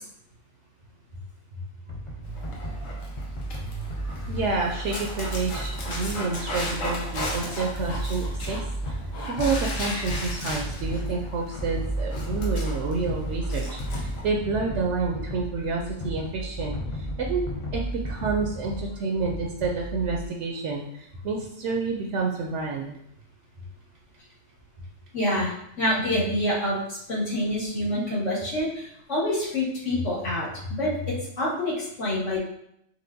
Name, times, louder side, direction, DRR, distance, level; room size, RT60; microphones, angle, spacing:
sound 1, 1.9-20.3, equal, 40° left, 0.4 m, -35 dB
Dog, 2.2-14.3, equal, 90° left, 1.3 m, -33 dB
voice 1, 4.3-8.6 8.9-9.0 9.2-17.5 17.7-23.0, right 4 dB, 70° right, 1 dB, 0.8 m, -29 dB
voice 2, 25.1-32.4, left 1 dB, 70° left, -9 dB, 2.0 m, -27 dB
4.3 x 3.2 x 2.6 m, 0.75 s
omnidirectional pair, 1.3 m